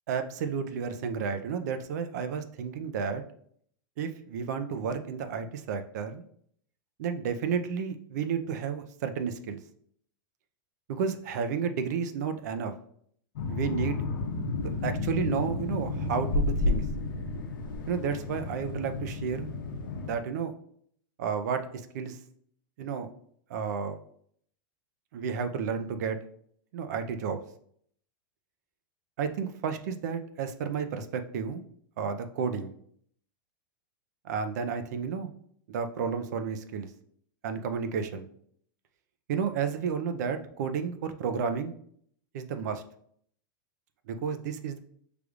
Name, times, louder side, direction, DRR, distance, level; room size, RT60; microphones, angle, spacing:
voice 1, 0.1-3.2 4.0-6.2 7.0-9.6 10.9-12.7 13.5-14.0 14.8-16.8 17.9-19.5 20.0-20.5 21.2-21.6 21.9-22.2 22.8-23.1 23.5-24.0 25.1-26.2 26.7-27.4 29.2-31.6 32.0-32.7 34.2-35.3 35.7-36.9 37.4-38.3 39.3-41.7 42.3-42.8 44.1-44.8, right 6 dB, 55° right, 8 dB, 0.5 m, -31 dB
sound 1, 13.4-20.1, left 3 dB, 85° left, 0.8 m, -31 dB
6.3 x 3.3 x 2.4 m, 0.63 s
supercardioid pair, 175°, 11 cm